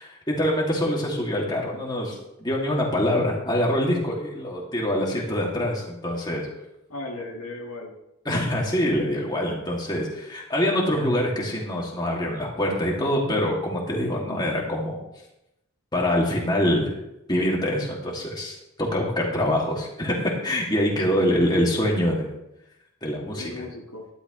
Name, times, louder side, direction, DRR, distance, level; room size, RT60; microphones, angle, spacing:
voice 1, 0.0-6.5 8.2-15.0 15.9-17.0 17.3-22.3 23.0-23.6, left 1 dB, 20° left, -2 dB, 2.5 m, -25 dB
voice 2, 6.9-7.9 19.3-19.5 21.1-21.2 23.4-24.0, left 2 dB, 90° left, -1 dB, 1.9 m, -36 dB
12.0 x 12.0 x 3.2 m, 0.87 s
head